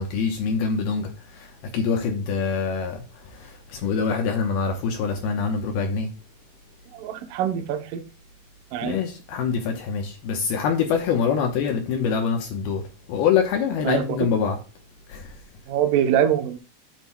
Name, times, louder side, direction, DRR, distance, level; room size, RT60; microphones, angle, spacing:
voice 1, 0.0-3.0 3.3-6.1 8.8-12.8 13.1-14.6 15.1-15.3, left 6 dB, 75° left, 2.6 m, -25 dB
voice 2, 6.9-8.0 8.7-9.0 13.8-14.0 15.7-16.6, right 9 dB, 80° right, 2.0 m, -23 dB
10.5 x 7.4 x 2.3 m
omnidirectional pair, 5.0 m